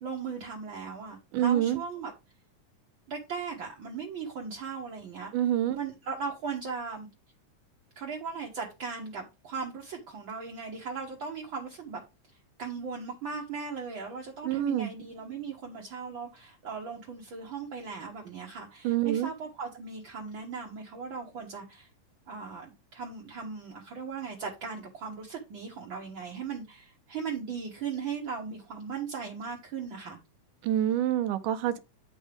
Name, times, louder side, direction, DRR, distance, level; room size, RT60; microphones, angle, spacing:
voice 1, 0.0-2.1 3.1-5.3 5.7-7.1 7.9-12.0 12.6-21.9 22.3-30.2, right 5 dB, 60° right, 1.3 m, -38 dB
voice 2, 1.3-1.8 5.3-5.8 14.4-14.9 18.8-19.3 30.6-31.8, right 11 dB, 80° right, 2.2 m, -26 dB
9.0 x 5.4 x 3.4 m
omnidirectional pair, 3.7 m